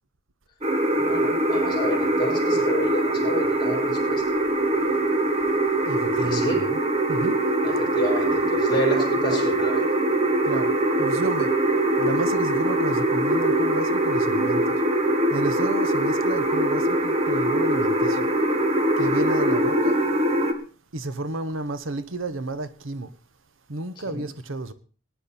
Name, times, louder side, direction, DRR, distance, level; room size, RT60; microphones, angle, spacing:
sound 1, 0.6-20.5, right 1 dB, 30° right, 1.4 m, -22 dB
voice 1, 1.0-4.2 6.1-6.6 7.6-9.9 24.0-24.3, equal, 20° left, 4.5 m, -29 dB
voice 2, 5.9-6.8 7.1-7.4 10.4-11.5 12.0-14.8 15.3-18.3 19.0-20.1 20.9-23.1 23.7-24.7, right 2 dB, 85° right, 1.0 m, -31 dB
18.5 x 10.0 x 4.2 m
head